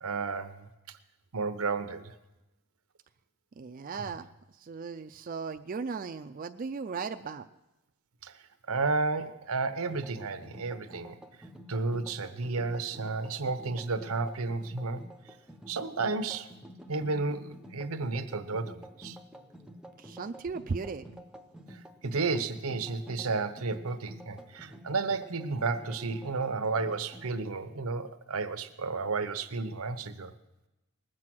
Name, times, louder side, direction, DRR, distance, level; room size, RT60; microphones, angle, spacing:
voice 1, 0.0-0.7 1.3-2.1 3.9-4.1 8.2-8.3 8.7-11.2 11.7-15.0 15.7-16.5 16.9-19.2 21.7-30.3, right 3 dB, 85° right, 10 dB, 0.8 m, -32 dB
voice 2, 3.6-4.3 4.6-7.5 20.0-21.1, right 5 dB, 40° right, 6 dB, 0.4 m, -36 dB
sound 1, 9.9-27.4, equal, 5° right, 0.6 m, -50 dB
19.5 x 7.5 x 6.1 m, 0.99 s
head